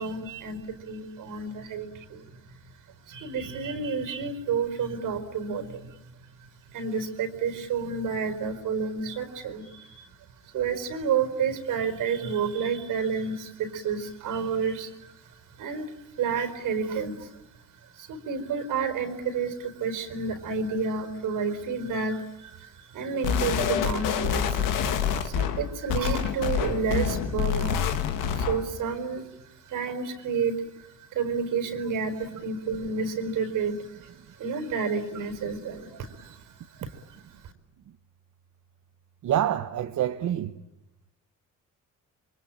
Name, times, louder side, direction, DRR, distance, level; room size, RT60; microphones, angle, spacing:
voice 1, 0.0-2.5 3.0-6.0 6.7-10.1 10.4-17.4 17.8-37.4, right 5 dB, 85° right, 4.5 m, -31 dB
sound 1, 23.2-28.7, left 8 dB, 90° left, 2.3 m, -27 dB
voice 2, 39.2-40.6, right 11 dB, 65° right, 1.2 m, -26 dB
27.5 x 24.0 x 8.8 m
cardioid pair, 110°, 32 cm